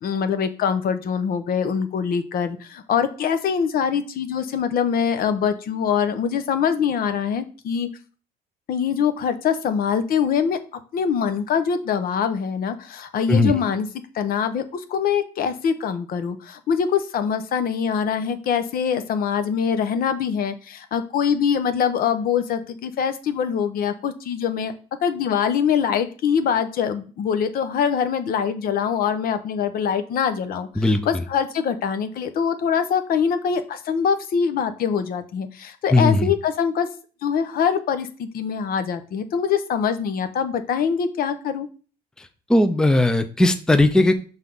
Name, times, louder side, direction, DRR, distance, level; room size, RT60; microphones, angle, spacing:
voice 1, 0.0-7.9 8.7-10.6 10.9-13.9 14.1-24.7 25.0-36.9 37.2-41.7, left 7 dB, 60° left, 10 dB, 0.8 m, -23 dB
voice 2, 35.9-36.3 42.2-44.1, left 2 dB, 5° left, 9 dB, 0.5 m, -18 dB
5.7 x 3.6 x 5.4 m, 0.38 s
cardioid pair, 110°, 17 cm